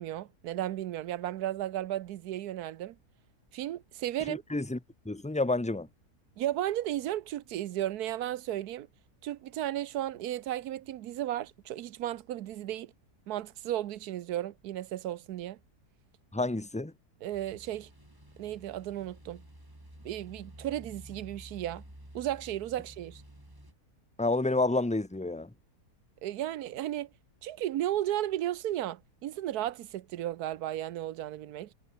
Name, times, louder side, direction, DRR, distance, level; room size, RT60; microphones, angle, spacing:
voice 1, 0.0-3.0 3.5-4.4 6.4-8.9 9.2-12.9 13.3-15.6 17.2-17.9 18.4-19.4 20.0-21.8 22.1-23.2 26.2-27.1 27.4-31.7, right 13 dB, 75° right, 1.2 m, -34 dB
voice 2, 4.3-4.8 5.0-5.9 16.3-16.9 24.2-25.5, left 2 dB, 5° left, 0.9 m, -29 dB
sound 1, 17.3-23.7, right 1 dB, 15° right, 4.0 m, -51 dB
omnidirectional pair, 1.7 m